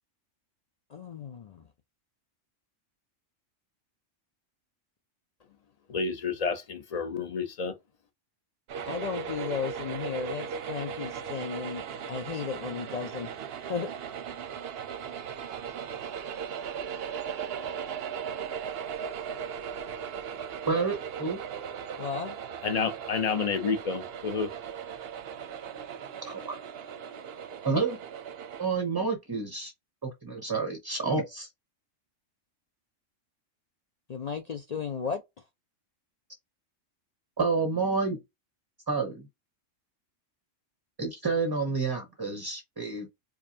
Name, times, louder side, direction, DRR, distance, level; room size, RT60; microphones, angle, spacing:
voice 1, 0.9-1.6 8.8-13.3 13.7-13.9 22.0-22.4 34.1-35.2, left 6 dB, 70° left, 0.3 m, -34 dB
voice 2, 5.9-7.7 22.6-24.5, left 5 dB, 40° left, 0.7 m, -30 dB
sound 1, 8.7-28.7, right 7 dB, 60° right, 0.7 m, -38 dB
voice 3, 20.7-21.4 26.2-26.5 27.6-28.0 28.6-29.7 30.0-31.5 37.4-38.2 38.9-39.3 41.0-43.1, right 4 dB, 25° right, 0.6 m, -29 dB
4.8 x 2.3 x 2.7 m
omnidirectional pair, 1.3 m